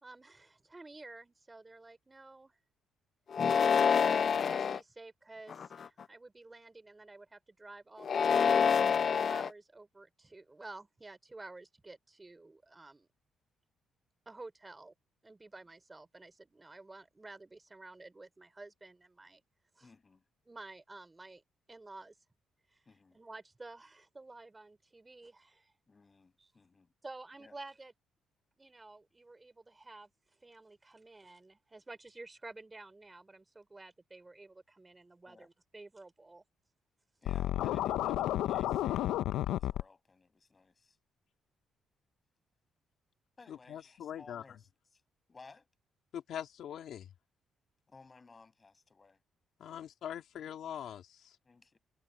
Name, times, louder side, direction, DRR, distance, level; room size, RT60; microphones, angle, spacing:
voice 1, 0.0-2.6 3.8-8.6 9.1-13.1 14.3-14.9 15.2-19.4 19.8-19.9 20.5-21.4 21.7-22.1 22.7-22.8 23.1-25.7 26.4-26.5 27.0-27.9 28.6-30.1 30.4-36.4, right 2 dB, 20° right, 3.8 m, -51 dB
sound 1, 3.3-4.8 5.5-6.0 8.0-9.5, left 6 dB, 50° left, 0.4 m, -27 dB
voice 2, 19.8-20.2 22.9-23.2 25.9-26.9 27.4-27.5 35.3-35.5 37.2-41.0 43.4-45.0 45.3-45.7 47.9-49.2 49.6-49.9 51.4-51.8, left 4 dB, 30° left, 6.9 m, -58 dB
Scratching (performance technique), 37.3-39.8, left 13 dB, 85° left, 0.6 m, -31 dB
voice 3, 43.5-44.4 46.1-47.1 49.6-51.4, left 9 dB, 70° left, 2.5 m, -42 dB
cardioid pair, 90°, 0 cm